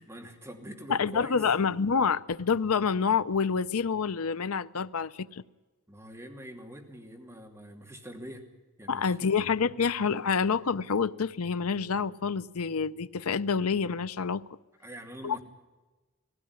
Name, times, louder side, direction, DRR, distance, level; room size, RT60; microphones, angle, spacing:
voice 1, 0.0-1.4 5.9-8.5 8.8-9.3 14.8-15.4, equal, 10° right, 2.9 m, -44 dB
voice 2, 0.9-5.4 8.9-14.4 15.2-15.4, left 5 dB, 85° left, 0.6 m, -27 dB
18.5 x 16.5 x 9.7 m
head